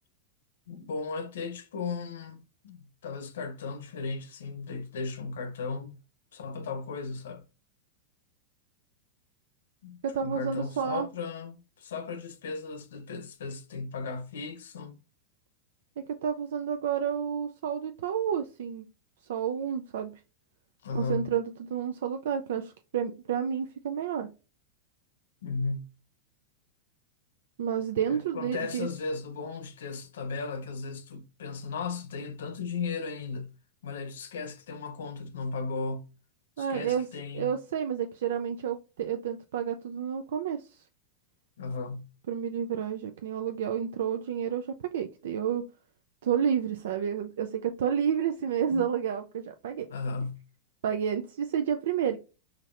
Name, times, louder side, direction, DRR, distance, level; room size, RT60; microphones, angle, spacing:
voice 1, 0.7-2.4 2.6-6.0 6.3-7.4 9.8-14.9 20.8-21.3 25.4-25.9 28.1-33.5 33.8-36.1 36.6-37.5 41.6-42.1 48.7-48.8 49.9-50.4, left 4 dB, 80° left, 0.7 m, -36 dB
voice 2, 10.0-11.1 16.0-18.8 19.3-20.1 20.9-24.3 27.6-28.9 36.6-37.1 37.3-40.7 42.3-45.6 46.2-49.9 50.8-52.2, right 8 dB, 75° right, 0.4 m, -30 dB
4.0 x 3.1 x 2.5 m
hypercardioid pair, 125°, 0 cm